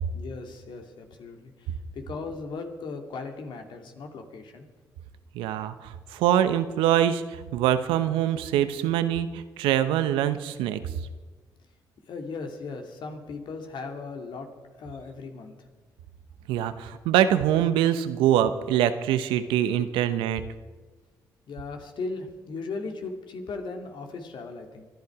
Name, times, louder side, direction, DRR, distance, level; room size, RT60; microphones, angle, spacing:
voice 1, 0.1-4.6 12.1-14.5 14.8-15.5 21.5-24.8, left 4 dB, 65° left, 4 dB, 2.4 m, -37 dB
voice 2, 5.3-10.8 16.5-20.4, right 11 dB, 85° right, 12 dB, 0.9 m, -24 dB
25.0 x 10.5 x 4.9 m, 1.3 s
supercardioid pair, 55°, 8 cm